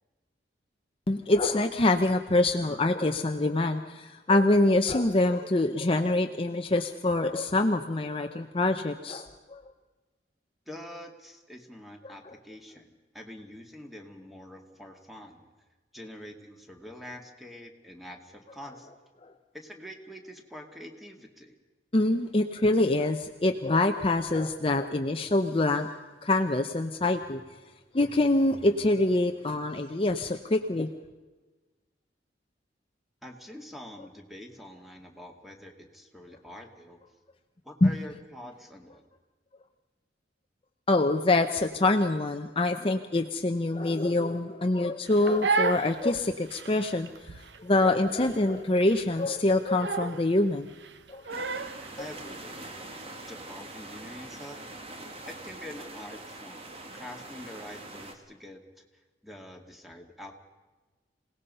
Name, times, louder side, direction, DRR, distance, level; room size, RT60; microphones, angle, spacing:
voice 1, 1.1-9.6 12.0-12.3 19.2-19.3 21.9-25.9 26.2-27.4 27.9-30.9 37.8-38.1 40.9-50.7 51.1-51.4 52.0-52.1, left 2 dB, 30° left, 6 dB, 0.8 m, -25 dB
voice 2, 10.7-15.4 15.9-18.9 19.5-21.5 33.2-37.0 37.6-39.0 52.0-52.7 53.3-54.6 55.3-56.7 56.9-58.8 59.2-60.3, left 1 dB, ahead, 3 dB, 2.2 m, -45 dB
Crying sobbing, 45.1-51.9, right 4 dB, 75° right, 1.0 m, -33 dB
sound 1, 51.3-58.1, right 2 dB, 35° right, 2.1 m, -43 dB
27.0 x 18.5 x 5.5 m, 1.2 s
head